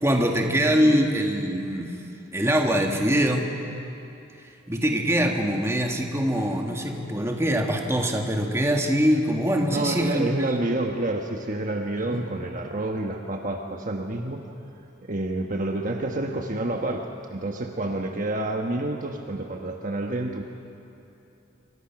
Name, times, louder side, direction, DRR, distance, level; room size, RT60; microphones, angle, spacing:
voice 1, 0.0-2.0 2.3-3.5 4.7-10.3 12.0-12.2, equal, 15° right, 2 dB, 1.9 m, -23 dB
voice 2, 9.7-14.5 15.0-20.4, right 2 dB, 40° right, 3 dB, 1.3 m, -28 dB
26.5 x 24.0 x 6.0 m, 2.8 s
head